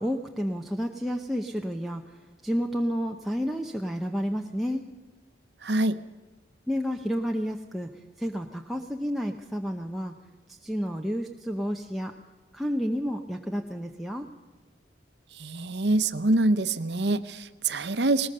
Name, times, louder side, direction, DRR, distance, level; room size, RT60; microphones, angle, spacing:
voice 1, 0.0-4.9 6.7-10.1 10.5-12.1 12.5-14.3, equal, ahead, 1 dB, 0.8 m, -30 dB
voice 2, 5.6-6.0 15.4-18.3, right 2 dB, 65° right, 12 dB, 0.9 m, -25 dB
20.0 x 19.5 x 6.7 m, 1.3 s
head